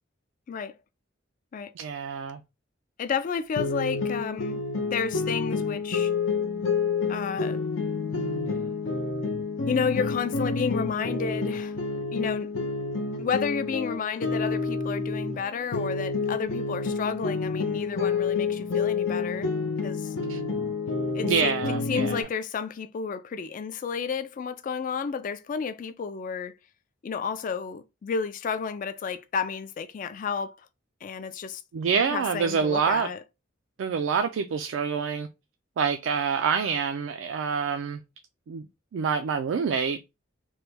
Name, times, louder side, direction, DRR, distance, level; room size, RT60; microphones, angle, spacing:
voice 1, 1.8-2.4 20.3-20.4 21.2-22.2 31.7-33.1 33.8-35.3 35.8-38.0 38.5-38.6 38.9-40.0, right 6 dB, 75° right, 0.3 m, -26 dB
voice 2, 3.0-4.6 4.9-6.1 7.1-7.6 9.7-11.7 12.1-12.5 13.2-19.5 19.8-20.1 21.1-21.5 21.9-26.6 27.0-30.6 31.0-31.6 32.1-33.2, left 6 dB, 45° left, 0.3 m, -31 dB
sound 1, 3.6-15.4 15.7-22.2, left 4 dB, 80° left, 0.6 m, -29 dB
3.1 x 2.2 x 3.2 m
head